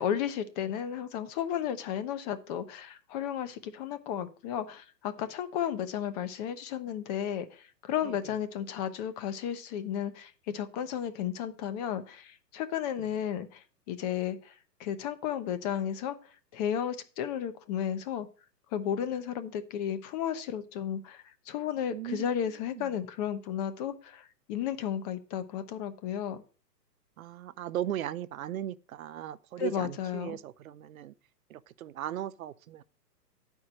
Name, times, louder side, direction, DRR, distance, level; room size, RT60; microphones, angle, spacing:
voice 1, 0.0-14.5 14.8-16.2 16.5-18.3 18.7-26.4 29.6-30.4, left 9 dB, 25° left, 0.6 m, -33 dB
voice 2, 8.0-8.3 13.0-13.1 21.9-22.3 22.7-22.9 27.2-31.1 31.5-32.8, right 11 dB, 60° right, 0.6 m, -37 dB
9.5 x 4.6 x 6.2 m
hypercardioid pair, 125°, 48 cm